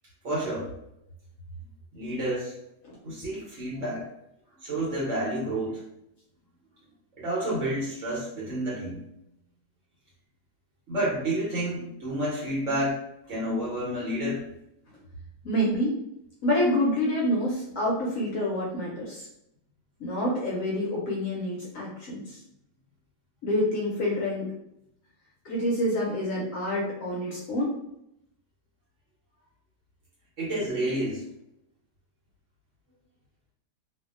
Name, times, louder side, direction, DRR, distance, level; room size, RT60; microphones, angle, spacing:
voice 1, 0.2-0.7 1.9-2.5 3.0-4.0 4.6-5.8 7.2-9.0 10.9-14.4 30.4-31.2, right 1 dB, 55° right, -7 dB, 1.2 m, -30 dB
voice 2, 15.4-15.9 16.4-19.3 20.0-22.4 23.4-24.5 25.4-27.7, left 1 dB, 65° left, -4 dB, 0.9 m, -27 dB
2.6 x 2.6 x 2.4 m, 0.80 s
omnidirectional pair, 1.7 m